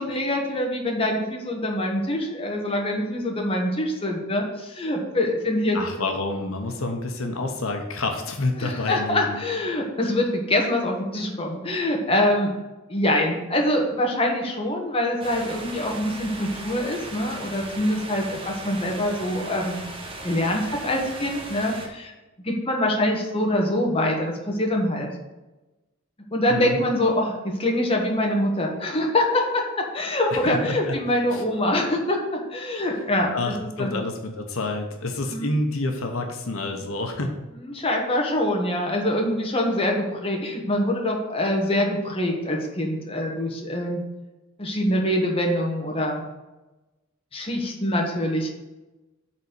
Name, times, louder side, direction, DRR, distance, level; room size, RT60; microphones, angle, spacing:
voice 1, 0.0-5.8 8.6-12.5 12.9-19.8 20.2-22.1 22.4-25.1 26.3-34.0 35.3-35.5 37.7-44.0 44.6-46.2 47.3-48.5, left 1 dB, 25° left, 0 dB, 1.3 m, -24 dB
voice 2, 5.7-9.4 26.5-26.8 30.3-31.0 31.3-31.4 33.3-37.4, left 2 dB, 80° left, 4 dB, 1.0 m, -28 dB
sound 1, 15.2-21.9, right 2 dB, 25° right, 1.2 m, -37 dB
7.2 x 4.1 x 6.7 m, 1.1 s
head